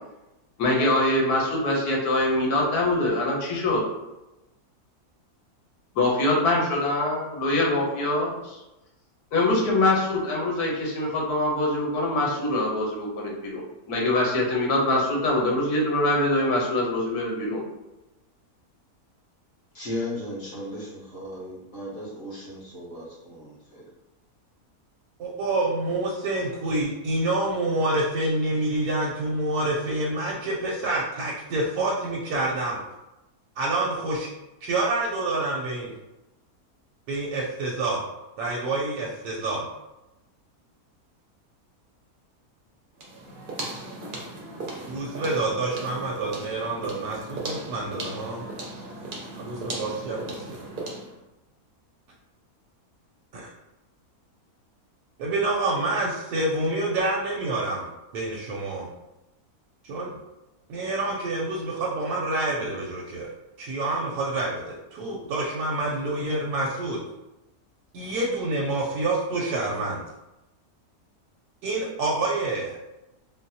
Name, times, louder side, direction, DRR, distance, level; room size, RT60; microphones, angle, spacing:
voice 1, 0.6-3.8 5.9-8.6 9.3-13.6 13.9-17.6, left 1 dB, 85° left, -2 dB, 1.3 m, -24 dB
voice 2, 19.7-23.9, left 1 dB, 55° left, -7 dB, 1.2 m, -36 dB
voice 3, 25.2-32.8 33.6-34.3 34.6-35.9 37.1-38.0 38.4-39.7 44.9-48.4 49.4-50.6 53.3-53.5 55.2-57.9 58.1-58.9 59.8-60.1 60.7-63.3 63.6-67.0 67.9-70.0 71.6-72.8, right 2 dB, 85° right, -4 dB, 1.1 m, -27 dB
sound 1, 43.0-51.2, right 2 dB, 55° right, 0.6 m, -37 dB
3.9 x 2.1 x 2.6 m, 0.97 s
omnidirectional pair, 1.6 m